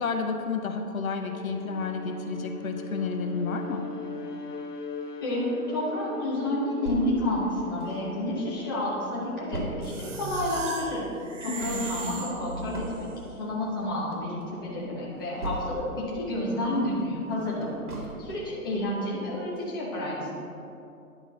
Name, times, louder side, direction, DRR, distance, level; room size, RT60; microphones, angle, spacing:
voice 1, 0.0-3.9 11.4-11.9, left 4 dB, 65° left, 5 dB, 0.9 m, -31 dB
Bowed string instrument, 1.2-9.6, left 3 dB, 90° left, 1.0 m, -40 dB
voice 2, 5.2-11.0 11.4-13.1 13.4-15.9 16.1-20.3, left 1 dB, 15° left, -6 dB, 0.9 m, -30 dB
sound 1, 6.9-8.4 8.8-8.9 9.1-16.1 16.5-18.6 19.1-19.2 19.6-19.7, right 2 dB, 75° right, 2.2 m, -39 dB
sound 2, 9.8-13.1, right 4 dB, 55° right, 1.0 m, -38 dB
10.5 x 4.5 x 5.5 m, 2.7 s
hypercardioid pair, 170°, 45 cm